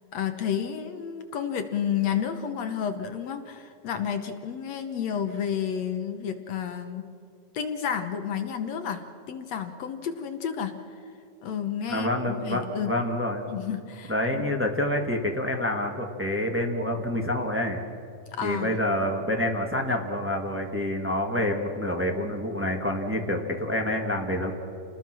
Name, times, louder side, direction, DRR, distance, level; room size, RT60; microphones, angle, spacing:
voice 1, 0.1-7.1 7.5-11.0 11.4-12.9 13.5-14.5 18.3-18.7, left 8 dB, 65° left, 7 dB, 1.9 m, -31 dB
voice 2, 11.9-13.5 14.1-17.8 18.4-24.5, left 1 dB, 5° right, 1 dB, 1.0 m, -27 dB
29.0 x 20.0 x 6.2 m, 2.6 s
omnidirectional pair, 3.9 m